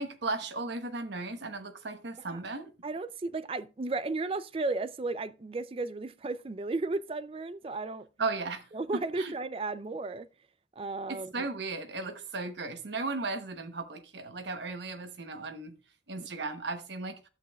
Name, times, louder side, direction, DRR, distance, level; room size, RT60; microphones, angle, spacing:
voice 1, 0.0-2.7 8.2-8.6 9.2-9.3 11.1-15.7 16.1-17.2, right 3 dB, 70° right, 1.0 m, -36 dB
voice 2, 2.8-8.1 8.7-10.3 10.8-11.5 16.2-16.3, right 3 dB, 30° right, 0.4 m, -34 dB
12.0 x 8.3 x 2.3 m
head